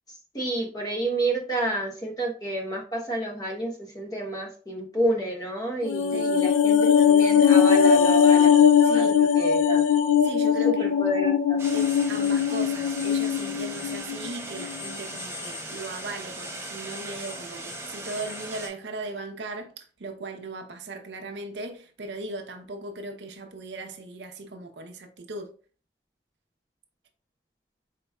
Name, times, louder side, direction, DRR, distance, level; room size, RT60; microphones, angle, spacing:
voice 1, 0.3-8.5 8.9-9.0 9.4-9.8 10.6-11.6, right 1 dB, 20° left, 0.9 m, -30 dB
sound 1, 5.8-14.3 14.6-14.7, left 7 dB, 85° left, 0.3 m, -20 dB
voice 2, 8.8-9.2 10.2-11.1 11.7-25.5, right 2 dB, 70° right, 0.7 m, -38 dB
sound 2, 11.6-18.7, right 1 dB, 15° right, 0.5 m, -38 dB
4.4 x 4.1 x 2.3 m
head